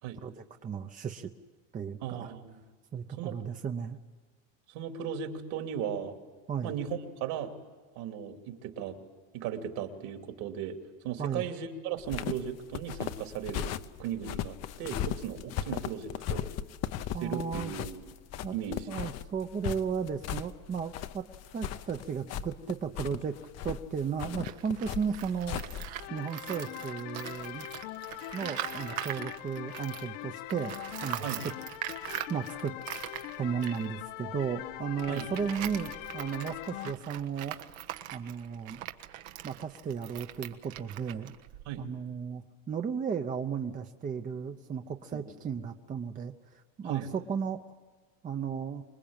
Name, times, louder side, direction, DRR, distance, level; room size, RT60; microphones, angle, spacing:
voice 1, 0.2-1.3 1.7-2.3 2.9-4.0 6.5-6.7 11.2-11.4 17.1-17.7 18.4-18.5 18.9-21.3 21.5-23.4 23.6-25.6 26.1-27.7 28.3-30.8 31.0-31.5 32.3-32.7 33.4-37.6 38.1-38.8 39.4-41.3 41.8-47.6 48.2-48.8, right 7 dB, 20° right, 6 dB, 0.8 m, -34 dB
voice 2, 2.0-2.6 3.2-3.4 4.7-6.1 6.6-7.5 7.9-9.0 9.3-10.8 11.0-13.7 14.0-16.5 17.2-18.1 18.5-18.9 31.2-31.5 35.1-35.3 41.7-41.9 45.1-45.3 46.8-47.1, right 8 dB, 60° right, 5 dB, 2.9 m, -37 dB
sound 1, 12.0-26.1, left 10 dB, 40° left, 0.8 m, -37 dB
Tools, 24.3-30.2 30.5-41.9, right 14 dB, 80° right, 1.5 m, -42 dB
sound 2, 26.0-36.9, left 17 dB, 70° left, 0.9 m, -42 dB
26.0 x 20.5 x 8.9 m, 1.3 s
supercardioid pair, 135°, 41 cm